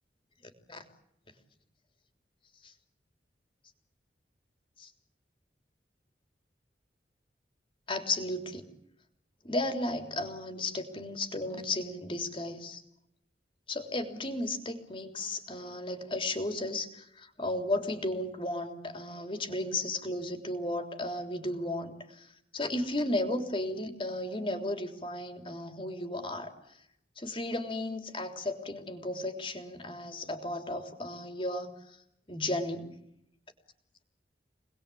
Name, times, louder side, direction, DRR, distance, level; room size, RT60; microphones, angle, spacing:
voice 1, 7.9-8.7 9.4-12.8 13.7-26.5 27.2-32.0 32.3-33.0, left 1 dB, 30° left, 6 dB, 3.4 m, -34 dB
27.5 x 20.5 x 8.6 m, 0.78 s
head